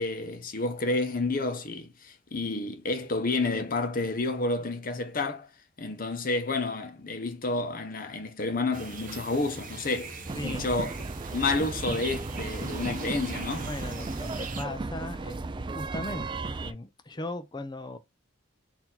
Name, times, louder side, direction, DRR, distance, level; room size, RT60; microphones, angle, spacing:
voice 1, 0.0-5.5 5.8-10.9 11.3-13.7, left 3 dB, 45° left, 1.0 m, -30 dB
sound 1, 8.7-14.6, right 4 dB, 45° right, 0.9 m, -41 dB
voice 2, 10.3-10.6 13.6-18.0, left 2 dB, 20° left, 0.6 m, -38 dB
sound 2, 10.3-16.7, right 3 dB, 25° right, 0.3 m, -35 dB
4.4 x 2.8 x 3.9 m
head